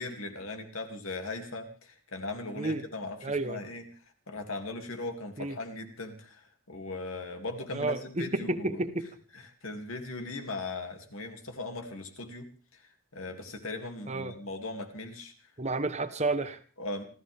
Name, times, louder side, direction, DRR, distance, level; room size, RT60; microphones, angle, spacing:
voice 1, 0.0-3.9 4.3-8.9 9.3-12.8 13.1-15.3 16.8-17.0, left 2 dB, 85° left, 5 dB, 2.9 m, -39 dB
voice 2, 3.2-3.6 5.4-5.6 7.7-9.1 14.1-14.3 15.6-16.6, right 2 dB, 35° right, 10 dB, 1.2 m, -31 dB
28.0 x 14.0 x 3.6 m, 0.37 s
head